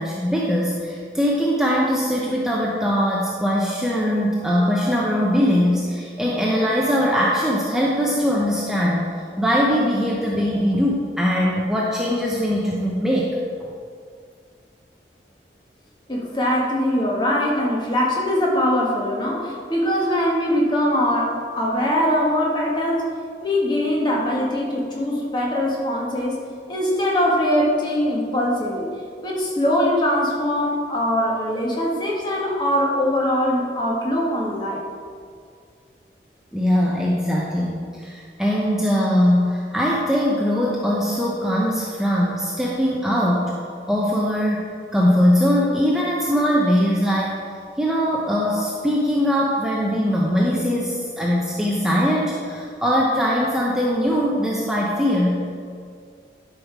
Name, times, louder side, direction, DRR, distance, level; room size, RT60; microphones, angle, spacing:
voice 1, 0.0-9.1 9.4-13.7 36.5-43.5 43.9-47.4 47.8-55.6, equal, 5° right, -4 dB, 0.8 m, -21 dB
voice 2, 16.1-23.0 23.4-26.4 26.7-28.9 29.2-34.9, equal, 25° left, -3 dB, 1.7 m, -22 dB
11.5 x 5.7 x 4.7 m, 2.1 s
head